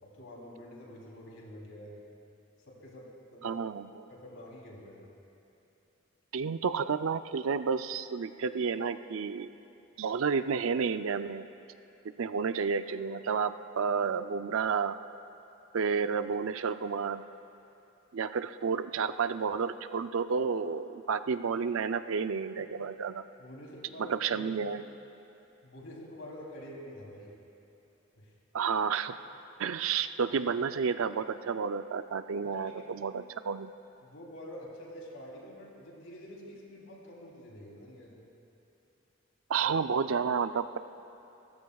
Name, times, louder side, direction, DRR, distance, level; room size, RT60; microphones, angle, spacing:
voice 1, 0.0-2.0 2.7-3.6 4.1-5.1 22.6-22.7 23.4-24.5 25.6-27.3 28.2-28.3 32.4-33.0 34.0-38.2 39.6-39.7, left 1 dB, 70° left, -3 dB, 3.2 m, -47 dB
voice 2, 3.4-4.1 6.3-9.5 10.0-11.5 12.2-15.0 15.7-17.2 18.1-23.2 24.0-24.8 28.5-29.2 29.6-33.7 39.5-40.8, right 6 dB, 70° right, 11 dB, 0.4 m, -31 dB
30.0 x 14.5 x 2.3 m, 2.9 s
head